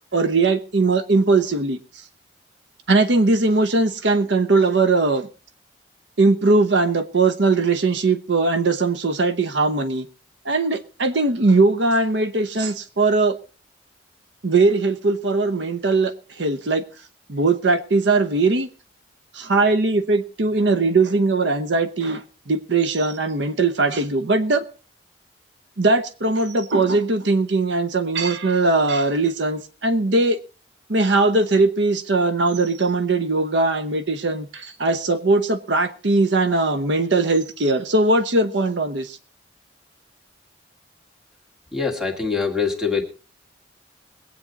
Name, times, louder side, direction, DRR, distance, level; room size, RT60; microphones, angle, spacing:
voice 1, 0.1-1.8 2.9-5.3 6.2-10.1 10.4-13.4 14.4-16.8 17.3-18.7 19.3-24.6 25.8-30.4 30.9-39.2, right 3 dB, 70° right, 0.9 m, -20 dB
voice 2, 41.7-43.0, left 5 dB, 5° right, 2.1 m, -23 dB
21.5 x 8.7 x 4.0 m
head